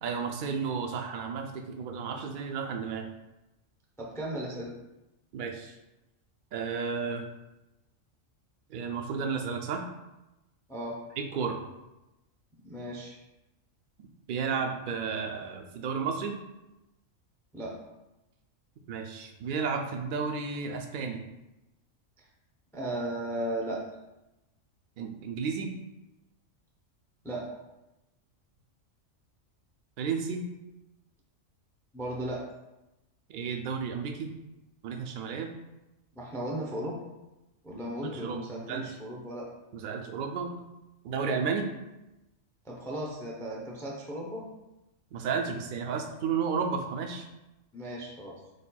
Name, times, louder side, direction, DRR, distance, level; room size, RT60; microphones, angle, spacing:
voice 1, 0.0-3.1 5.3-5.7 6.5-7.2 8.7-9.8 11.2-11.6 14.3-16.4 18.9-21.2 25.0-25.7 30.0-30.5 33.3-34.3 34.8-35.5 38.0-39.0 39.7-40.5 41.0-41.7 45.1-47.2, right 5 dB, 60° right, 4 dB, 0.5 m, -32 dB
voice 2, 4.0-4.7 10.7-11.0 12.6-13.2 17.5-17.8 22.7-23.8 27.2-27.6 31.9-32.5 36.1-37.0 37.6-39.5 42.6-44.5 47.7-48.4, right 1 dB, 5° left, -2 dB, 0.4 m, -36 dB
4.9 x 4.2 x 2.3 m, 0.97 s
omnidirectional pair, 1.4 m